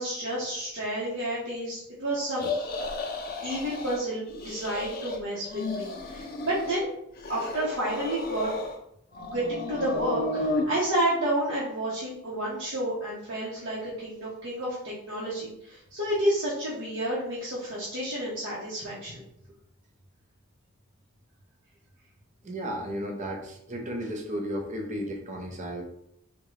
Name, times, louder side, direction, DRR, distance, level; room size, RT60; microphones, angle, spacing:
voice 1, 0.0-2.5 3.4-6.9 7.3-8.6 9.2-19.2, right 1 dB, 75° right, -8 dB, 0.9 m, -30 dB
sound 1, 2.3-4.0 4.3-5.2 5.4-6.8 7.2-8.8 9.1-10.7, left 2 dB, 45° left, 0.5 m, -33 dB
voice 2, 22.4-25.8, equal, 35° right, 2 dB, 0.6 m, -34 dB
3.6 x 2.2 x 3.1 m, 0.74 s
head